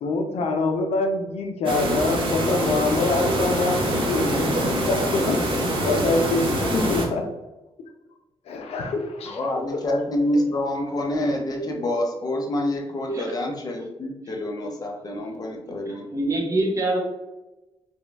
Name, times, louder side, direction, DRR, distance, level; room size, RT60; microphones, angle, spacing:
voice 1, 0.0-7.3 7.8-7.9 8.5-9.7, left 3 dB, 75° left, 3 dB, 0.6 m, -25 dB
sound 1, 1.7-7.1, right 1 dB, 55° right, 0.9 m, -24 dB
voice 2, 9.2-16.1, left 1 dB, 40° left, 1 dB, 0.8 m, -27 dB
voice 3, 16.1-17.0, right 2 dB, 30° right, 0 dB, 1.0 m, -23 dB
4.3 x 2.3 x 3.4 m, 1.0 s
cardioid pair, 125°, 10 cm